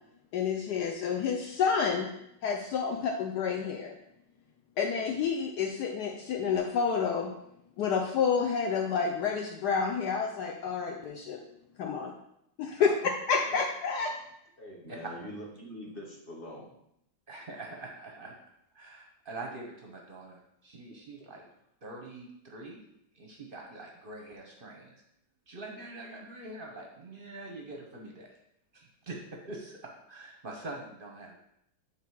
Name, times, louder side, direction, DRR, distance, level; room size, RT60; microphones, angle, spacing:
voice 1, 0.3-2.1 2.4-3.9 4.8-7.3 7.8-11.4 11.8-12.1 12.6-12.9 13.3-14.1, left 6 dB, 70° left, 2 dB, 1.1 m, -29 dB
voice 2, 14.6-16.7, equal, 30° left, -3 dB, 1.6 m, -43 dB
voice 3, 17.3-18.3 18.7-21.4 21.8-22.8 23.1-25.0 25.5-28.3 28.7-31.4, right 2 dB, 45° right, 0 dB, 0.7 m, -44 dB
7.8 x 3.4 x 4.6 m, 0.77 s
omnidirectional pair, 1.9 m